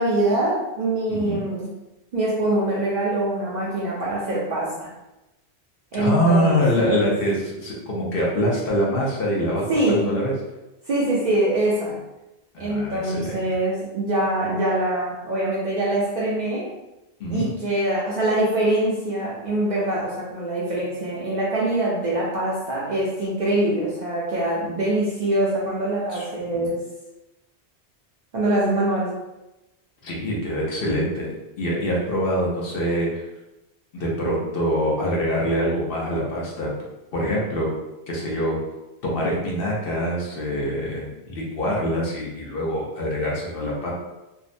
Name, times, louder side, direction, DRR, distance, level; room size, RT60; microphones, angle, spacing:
voice 1, 0.0-1.7 2.1-4.9 5.9-7.1 9.7-10.2 10.9-12.0 12.6-16.7 17.3-26.8 28.3-29.1, right 1 dB, 55° right, -6 dB, 0.5 m, -24 dB
voice 2, 1.1-1.4 5.9-10.3 12.5-13.4 17.2-17.5 26.1-26.7 30.0-31.3 31.6-33.2 33.9-36.7 37.1-37.7 38.1-38.6 39.0-43.9, equal, 60° left, -3 dB, 0.8 m, -24 dB
2.6 x 2.0 x 2.5 m, 0.99 s
omnidirectional pair, 1.1 m